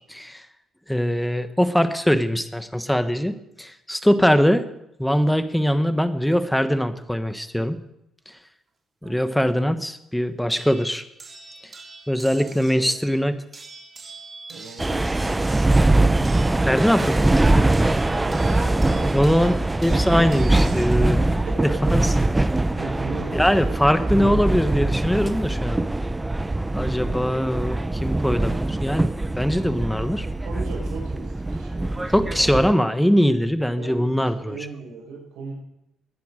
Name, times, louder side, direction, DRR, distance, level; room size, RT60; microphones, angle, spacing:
voice 1, 0.1-0.4 0.9-4.7 5.0-7.8 8.3-8.4 9.0-11.0 12.1-13.4 16.6-17.4 19.1-19.6 19.8-21.3 21.9-22.1 22.4-22.5 23.3-25.8 26.7-30.3 32.1-34.6, equal, 5° left, 10 dB, 1.2 m, -22 dB
voice 2, 9.0-9.4 12.4-13.0 14.5-15.5 18.1-19.4 21.5-21.7 22.1-22.2 22.7-23.8 30.4-32.5 33.7-35.5, right 4 dB, 85° right, 0 dB, 5.6 m, -38 dB
sound 1, 10.5-12.9 13.5-21.1 22.2-22.6, right 3 dB, 40° right, 3.6 m, -44 dB
sound 2, 14.8-32.7, right 2 dB, 15° right, 0.5 m, -22 dB
20.0 x 10.5 x 5.0 m, 0.82 s
cardioid pair, 90°, 0 cm